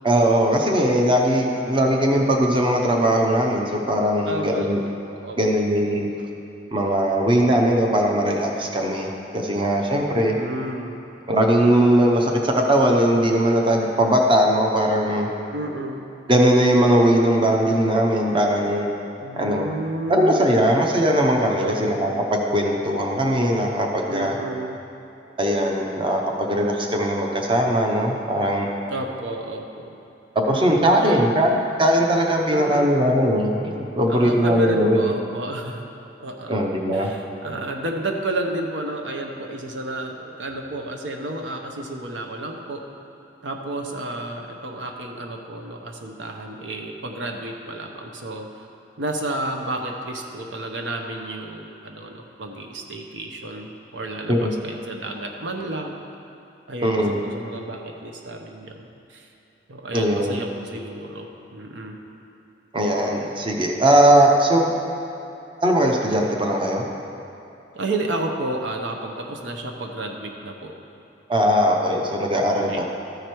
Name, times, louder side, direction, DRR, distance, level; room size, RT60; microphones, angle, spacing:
voice 1, 0.0-4.8 5.4-6.1 6.7-10.3 11.3-15.3 16.3-18.9 19.3-19.7 20.1-24.3 25.4-28.8 30.3-35.0 36.5-37.1 54.3-54.5 56.8-57.2 59.9-60.4 62.7-64.7 65.6-66.9 71.3-72.8, right 1 dB, 30° right, 1 dB, 0.7 m, -20 dB
voice 2, 4.3-5.4 10.1-11.0 15.5-16.1 19.2-20.8 21.6-22.1 24.1-24.8 28.9-29.9 30.5-31.3 32.5-33.0 34.1-35.9 36.2-36.5 36.9-42.8 43.4-48.5 49.0-56.0 56.7-58.8 59.1-59.3 59.7-62.0 67.7-70.7 72.6-72.8, right 1 dB, 80° right, 3 dB, 0.8 m, -31 dB
13.5 x 4.9 x 4.5 m, 2.9 s
head